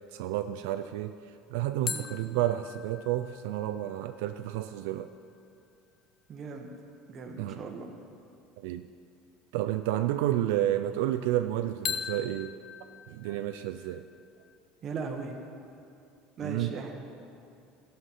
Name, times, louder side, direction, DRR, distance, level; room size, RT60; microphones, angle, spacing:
voice 1, 0.1-1.2 1.5-5.1 7.4-7.6 8.6-8.9 9.5-12.5 13.1-14.0 16.4-16.7, right 13 dB, 80° right, 9 dB, 0.3 m, -30 dB
sound 1, 1.9-5.4 11.9-14.6, left 7 dB, 35° left, 0.4 m, -41 dB
voice 2, 6.3-6.7 7.1-7.9 14.8-15.4 16.4-16.9, right 5 dB, 30° right, 3 dB, 1.0 m, -38 dB
13.5 x 5.7 x 5.4 m, 2.5 s
cardioid pair, 155°, 0 cm